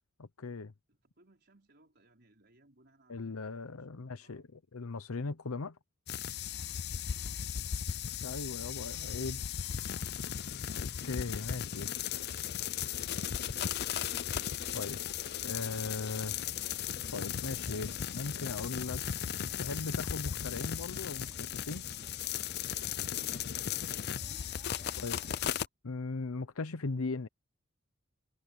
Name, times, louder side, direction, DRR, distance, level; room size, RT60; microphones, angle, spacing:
voice 1, 0.2-0.7 3.1-4.4 4.7-5.8 8.2-9.4 10.8-11.9 14.7-15.0 15.4-16.4 17.1-19.0 19.6-21.8 25.0-25.5 25.8-27.3, left 3 dB, 85° left, 0.8 m, -38 dB
voice 2, 0.9-3.4 3.7-4.5 7.0-7.2 7.5-7.7 12.7-13.7 23.2-25.7, right 1 dB, 50° right, 4.8 m, -65 dB
sound 1, 6.1-25.7, left 9 dB, 50° left, 0.5 m, -36 dB
sound 2, 9.4-16.7, left 4 dB, 25° left, 7.5 m, -66 dB
sound 3, 13.9-25.4, equal, 25° right, 5.8 m, -55 dB
head